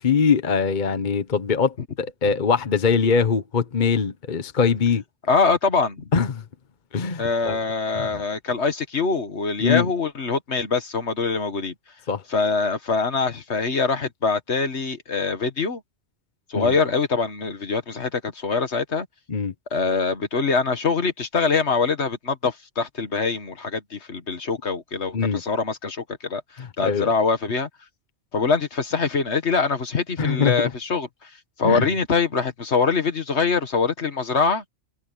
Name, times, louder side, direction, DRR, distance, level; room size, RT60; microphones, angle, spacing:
voice 1, 0.0-5.0 6.1-6.4 6.9-7.6 8.0-8.1 9.6-9.9 12.1-12.2 16.5-16.7 19.3-19.5 25.1-25.4 26.6-27.1 30.2-30.7 31.6-31.9, left 5 dB, 40° left, 1.1 m, -22 dB
voice 2, 5.3-6.1 7.2-11.7 12.3-15.8 16.5-19.1 19.7-27.7 28.3-31.3 31.6-34.6, left 4 dB, 65° left, 1.9 m, -24 dB
omnidirectional pair, 1.2 m